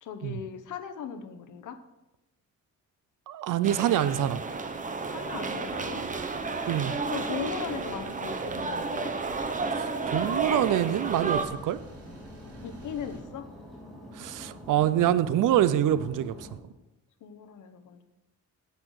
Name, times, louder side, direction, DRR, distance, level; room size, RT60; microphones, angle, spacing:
voice 1, 0.0-1.8 5.1-6.0 7.1-9.1 12.6-13.5 17.2-18.0, left 8 dB, 75° left, 10 dB, 1.1 m, -38 dB
voice 2, 3.3-4.4 6.7-6.9 9.8-11.8 14.2-16.3, right 11 dB, 80° right, 16 dB, 0.6 m, -25 dB
sound 1, 3.6-11.4, right 4 dB, 25° right, 0.9 m, -32 dB
sound 2, 5.0-13.2, equal, 50° right, 2.7 m, -49 dB
sound 3, 10.4-16.5, left 1 dB, ahead, 3.2 m, -46 dB
9.7 x 8.2 x 6.4 m, 1.0 s
wide cardioid pair, 160°, 31 cm